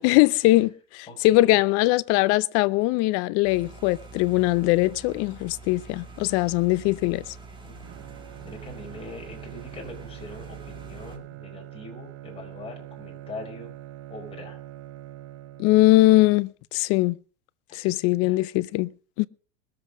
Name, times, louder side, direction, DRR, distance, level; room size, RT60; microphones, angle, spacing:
voice 1, 0.0-7.2 15.6-17.2 17.7-18.9 19.2-19.3, left 18 dB, 45° left, 0.6 m, -21 dB
voice 2, 1.1-1.6 7.6-7.9 8.4-13.7 14.1-14.6 17.7-17.9 18.2-18.4, left 2 dB, 15° left, 5.2 m, -42 dB
sound 1, 3.4-11.2, right 3 dB, 15° right, 2.3 m, -45 dB
Bowed string instrument, 7.8-16.2, right 14 dB, 45° right, 0.9 m, -43 dB
21.0 x 7.6 x 5.1 m
supercardioid pair, 130°, 35 cm